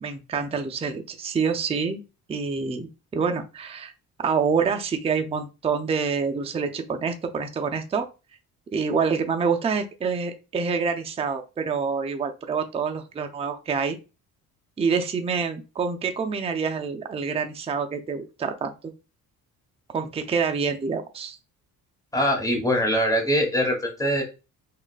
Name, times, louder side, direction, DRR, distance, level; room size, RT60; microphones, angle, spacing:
voice 1, 0.0-2.0 2.3-2.9 3.1-3.9 4.2-8.1 8.7-14.0 14.8-18.7 19.9-21.4, right 5 dB, 15° right, 5 dB, 0.4 m, -26 dB
voice 2, 22.1-24.2, equal, 10° left, 0 dB, 1.5 m, -23 dB
3.7 x 2.4 x 2.4 m, 0.29 s
supercardioid pair, 75°, 37 cm